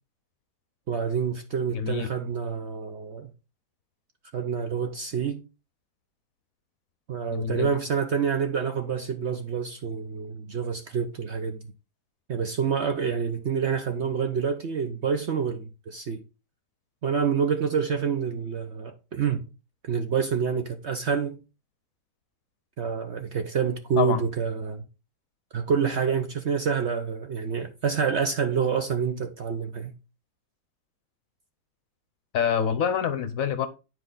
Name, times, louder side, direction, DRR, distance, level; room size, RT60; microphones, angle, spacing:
voice 1, 0.9-3.3 4.3-5.4 7.1-11.6 12.3-16.2 17.0-19.4 19.8-21.4 22.8-24.8 25.5-29.9, right 6 dB, 55° right, 0.8 m, -27 dB
voice 2, 1.7-2.1 7.3-7.7 24.0-24.2 32.3-33.7, left 8 dB, 65° left, 1.0 m, -26 dB
10.0 x 4.7 x 3.8 m
omnidirectional pair, 1.8 m